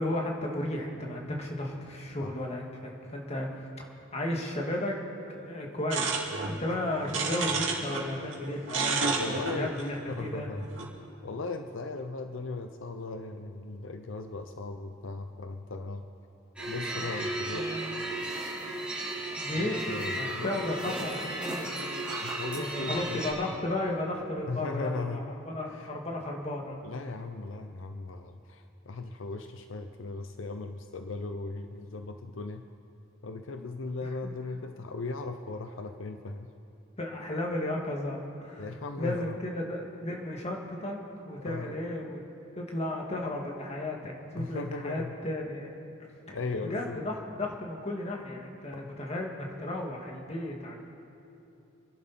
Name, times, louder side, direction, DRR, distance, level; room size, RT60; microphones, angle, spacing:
voice 1, 0.0-3.7 4.1-5.0 5.3-6.1 6.5-10.5 19.4-19.8 20.1-22.1 22.6-25.2 25.5-26.8 34.0-34.3 37.0-38.7 39.0-42.2 42.6-45.7 46.3-46.4 46.7-47.1 47.4-50.8, left 1 dB, 35° left, 0 dB, 1.9 m, -34 dB
sound 1, 5.9-8.0 8.3-10.9, right 4 dB, 70° right, 2.6 m, -31 dB
voice 2, 9.1-10.6 11.2-16.1 16.7-17.7 19.6-21.0 22.2-23.2 24.5-25.3 25.6-26.0 26.8-32.7 33.2-36.5 38.6-39.4 41.4-41.7 44.4-45.2 46.3-47.0 48.7-48.9, left 3 dB, 80° left, 7 dB, 0.7 m, -38 dB
sound 2, 16.6-23.3, right 1 dB, 5° right, 4.2 m, -34 dB
26.5 x 11.5 x 4.3 m, 2.8 s
head